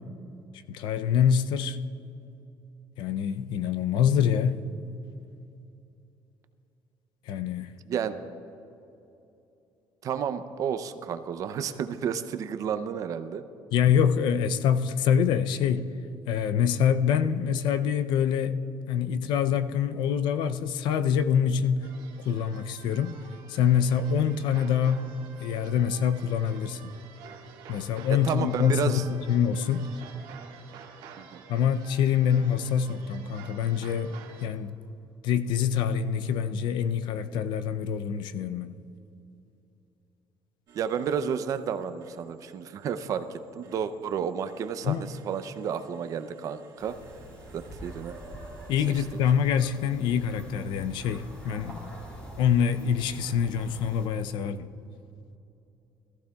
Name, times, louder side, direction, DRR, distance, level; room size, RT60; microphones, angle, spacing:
voice 1, 0.7-1.8 3.0-4.6 7.3-7.7 13.7-15.9 16.3-18.6 18.9-21.9 22.2-23.2 23.5-25.1 25.4-26.9 27.7-29.9 31.5-34.7 35.2-38.8 44.8-45.0 48.7-51.9 52.4-54.7, left 8 dB, 70° left, 0.5 m, -25 dB
voice 2, 10.0-13.4 28.2-29.0 31.2-31.4 40.7-47.0 47.5-48.2, right 7 dB, 45° right, 0.5 m, -31 dB
sound 1, 21.8-34.5, right 7 dB, 85° right, 1.4 m, -49 dB
sound 2, 40.7-49.0, right 5 dB, 60° right, 1.7 m, -60 dB
sound 3, 46.8-54.1, right 1 dB, 15° left, 2.6 m, -45 dB
21.0 x 14.5 x 2.3 m
cardioid pair, 175°, 8 cm